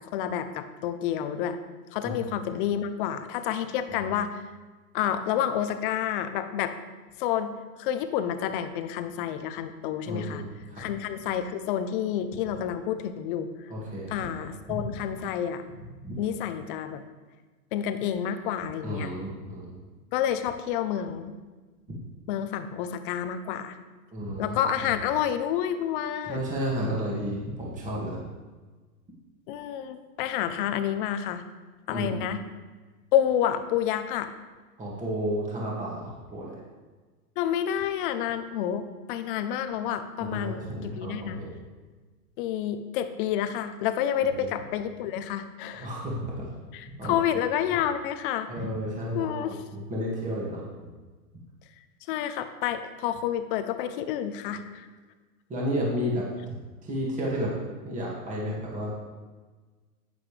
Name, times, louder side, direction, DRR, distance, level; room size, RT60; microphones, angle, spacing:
voice 1, 0.1-1.6 1.9-4.4 4.9-6.7 7.2-10.4 10.8-13.5 14.1-15.6 16.2-17.0 17.7-19.1 20.1-21.3 22.3-23.8 24.4-26.4 29.5-31.4 31.9-32.4 33.1-34.3 37.4-41.4 42.4-45.9 46.7-48.5 49.1-49.6 52.1-54.9, left 10 dB, 35° left, 10 dB, 0.7 m, -29 dB
voice 2, 2.0-2.3 10.1-10.9 13.7-14.1 14.4-14.9 16.0-16.2 18.8-19.8 24.1-24.6 26.3-28.2 31.9-32.1 34.8-36.6 40.2-41.5 44.2-44.5 45.8-46.5 47.0-47.2 48.5-50.6 54.5-54.6 55.5-56.3 56.8-57.5 57.8-58.9, equal, 15° right, -4 dB, 2.1 m, -32 dB
11.0 x 9.5 x 3.3 m, 1.3 s
hypercardioid pair, 130°, 48 cm